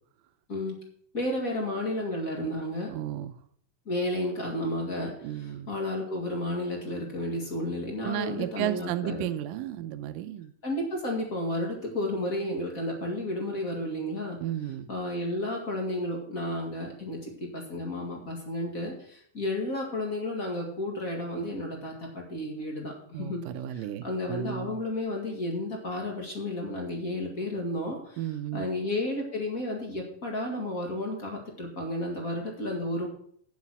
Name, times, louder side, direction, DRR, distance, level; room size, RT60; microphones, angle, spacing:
voice 1, 1.1-2.9 3.8-9.2 10.6-14.4 14.9-23.4 23.7-28.2 28.5-33.1, left 1 dB, 30° left, 0 dB, 1.6 m, -32 dB
voice 2, 2.9-3.4 5.2-5.7 8.0-10.5 14.4-14.9 23.1-24.8 28.2-28.7, right 12 dB, 85° right, 10 dB, 2.0 m, -33 dB
8.9 x 7.4 x 6.0 m, 0.62 s
omnidirectional pair, 4.4 m